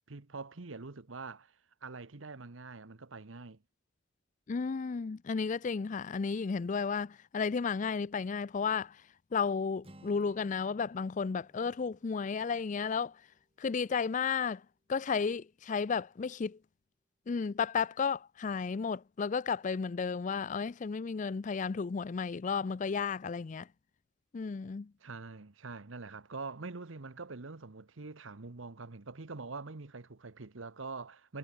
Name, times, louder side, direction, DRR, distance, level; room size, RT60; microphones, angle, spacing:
voice 1, 0.1-1.5 1.8-3.6 25.0-31.4, right 3 dB, 80° right, 1.1 m, -44 dB
voice 2, 4.5-9.0 9.3-13.2 13.6-14.6 14.9-16.6 17.3-23.7 24.3-24.9, left 5 dB, 40° left, 0.4 m, -33 dB
Acoustic guitar, 9.8-13.8, right 1 dB, 30° right, 5.0 m, -60 dB
head